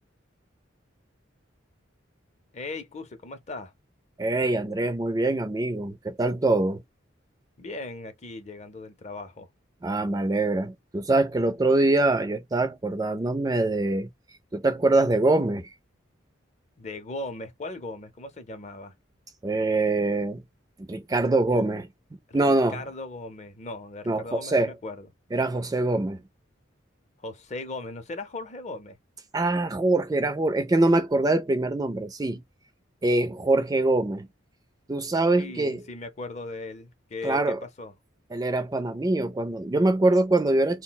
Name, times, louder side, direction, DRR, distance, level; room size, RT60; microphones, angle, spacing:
voice 1, 2.5-3.7 7.6-9.5 16.8-18.9 21.5-21.7 22.3-25.1 27.2-29.0 35.4-37.9, left 2 dB, 35° left, 0.5 m, -38 dB
voice 2, 4.2-6.8 9.8-14.1 14.5-15.7 19.4-20.4 20.8-21.9 22.3-22.8 24.1-24.7 25.3-26.2 29.3-32.4 33.0-34.3 34.9-35.8 37.2-37.6 38.3-40.8, right 2 dB, 20° right, 0.3 m, -24 dB
2.3 x 2.1 x 3.8 m
head